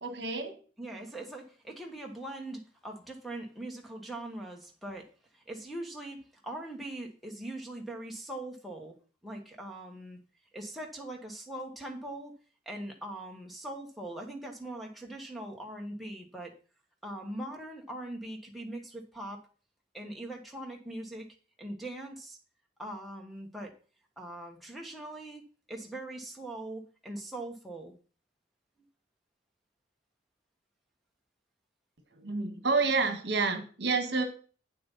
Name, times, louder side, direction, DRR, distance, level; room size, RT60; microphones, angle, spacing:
voice 1, 0.0-0.6 32.1-34.2, right 4 dB, 60° right, 7 dB, 1.6 m, -29 dB
voice 2, 0.8-5.1 5.3-9.0 9.2-10.2 10.5-12.3 12.6-16.5 17.0-19.4 19.9-21.3 21.6-22.4 22.8-23.7 24.2-25.4 25.7-27.9, right 1 dB, ahead, -1 dB, 1.4 m, -41 dB
8.8 x 7.6 x 4.1 m, 0.38 s
head